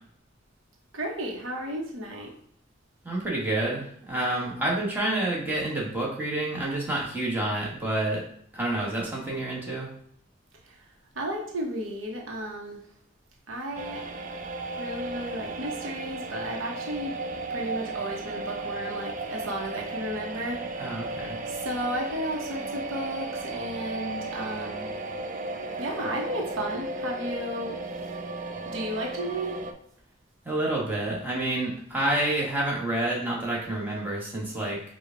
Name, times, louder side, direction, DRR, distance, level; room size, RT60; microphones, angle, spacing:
voice 1, 0.9-2.3 10.7-10.8 11.1-12.8 13.5-14.1 14.8-17.2 17.5-20.6 21.5-24.9 25.8-27.8 28.6-29.6, right 1 dB, 80° right, 0 dB, 1.0 m, -33 dB
voice 2, 3.0-8.2 8.5-9.9 20.8-21.4 30.4-34.8, right 1 dB, 10° right, -4 dB, 1.4 m, -28 dB
sound 1, 13.8-29.7, right 2 dB, 40° right, 0.5 m, -35 dB
4.9 x 2.4 x 4.5 m, 0.63 s
head